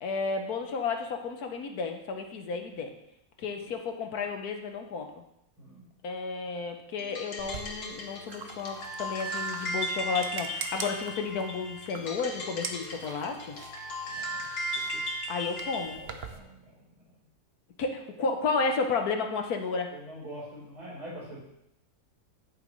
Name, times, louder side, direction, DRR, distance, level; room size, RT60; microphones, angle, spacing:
voice 1, 0.0-2.9 3.4-5.2 6.0-13.6 15.3-16.0 17.8-19.9, left 4 dB, 70° left, 4 dB, 1.5 m, -32 dB
sound 1, 7.0-16.0, equal, 85° left, 2.0 m, -36 dB
sound 2, 7.4-16.4, right 6 dB, 50° right, 0.8 m, -44 dB
voice 2, 14.1-14.4 15.9-16.6 19.9-21.4, equal, 75° right, -6 dB, 4.8 m, -44 dB
10.0 x 8.9 x 3.2 m, 0.81 s
omnidirectional pair, 1.7 m